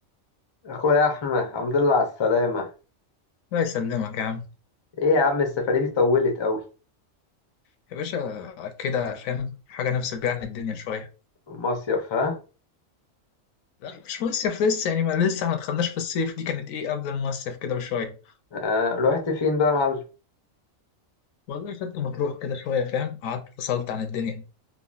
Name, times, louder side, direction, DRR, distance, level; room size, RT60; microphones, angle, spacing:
voice 1, 0.6-2.7 5.0-6.6 11.5-12.4 18.5-20.0, left 3 dB, 45° left, 0.3 m, -23 dB
voice 2, 3.5-4.5 7.9-11.1 13.8-18.1 21.5-24.4, left 7 dB, 80° left, 1.0 m, -28 dB
3.6 x 2.1 x 2.3 m
omnidirectional pair, 1.4 m